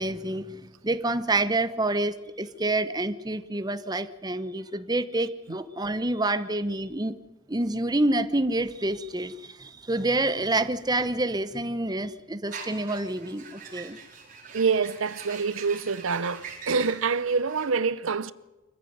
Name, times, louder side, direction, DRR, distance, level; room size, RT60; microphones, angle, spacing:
voice 1, 0.0-7.1 7.5-14.0, right 2 dB, 20° right, 0.9 m, -28 dB
sound 1, 12.5-17.7, right 6 dB, 45° right, 4.7 m, -43 dB
voice 2, 14.5-18.3, right 5 dB, 85° right, 0.8 m, -26 dB
25.5 x 15.0 x 9.4 m
head